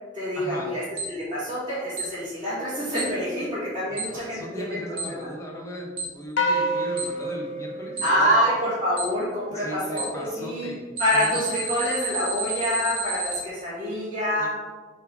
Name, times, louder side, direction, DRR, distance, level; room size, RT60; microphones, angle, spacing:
voice 1, 0.1-5.3 8.0-10.7 11.0-14.5, equal, 25° right, -12 dB, 2.0 m, -26 dB
Alarm, 1.0-1.1 2.0-2.1 3.0-3.1 4.0-4.1 5.0-5.1 6.0-6.1 7.0-7.1 8.0-8.1 9.0-9.1 10.0-10.1 11.0-13.4, right 5 dB, 80° right, 1.7 m, -30 dB
voice 2, 3.9-8.4 9.5-10.8 11.1-11.4 14.4-14.5, equal, 15° left, -2 dB, 1.1 m, -37 dB
sound 1, 6.4-8.9, equal, 75° left, 0.8 m, -28 dB
6.7 x 3.9 x 4.7 m, 1.4 s
head